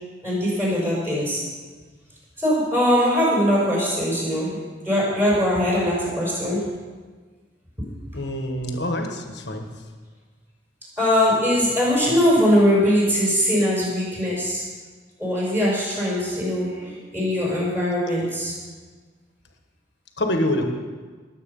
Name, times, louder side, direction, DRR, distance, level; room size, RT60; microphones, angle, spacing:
voice 1, 0.2-1.4 2.4-4.6 4.8-6.7 11.0-14.6 15.2-18.5, equal, 10° right, -5 dB, 5.5 m, -21 dB
voice 2, 8.1-9.7 20.2-20.7, left 1 dB, 65° left, 4 dB, 1.6 m, -25 dB
20.0 x 8.4 x 5.5 m, 1.4 s
head